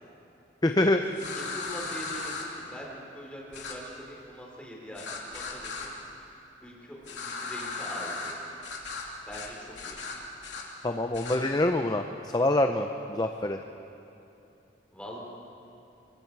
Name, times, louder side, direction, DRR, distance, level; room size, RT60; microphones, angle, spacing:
voice 1, 0.6-1.0 10.8-13.6, left 1 dB, 20° left, 6 dB, 0.6 m, -25 dB
sound 1, 1.1-2.4 3.5-3.7 5.0-5.9 7.0-8.3 8.6-9.0 9.3-9.5 9.7-10.6 11.1-11.4, left 4 dB, 90° left, 2.9 m, -36 dB
voice 2, 1.5-6.0 6.6-8.3 9.3-10.0 14.9-15.2, equal, 5° left, -3 dB, 3.9 m, -43 dB
24.5 x 23.5 x 4.7 m, 2.8 s
head